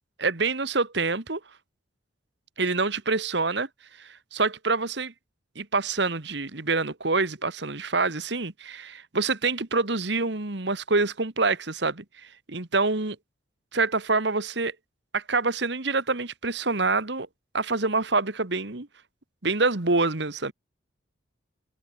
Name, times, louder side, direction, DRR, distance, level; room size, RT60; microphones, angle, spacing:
voice 1, 0.2-1.4 2.6-3.7 4.0-5.1 5.5-12.0 12.5-13.2 13.7-14.7 15.1-17.3 17.5-18.9 19.4-20.5, right 3 dB, 65° right, 1.6 m, -26 dB
head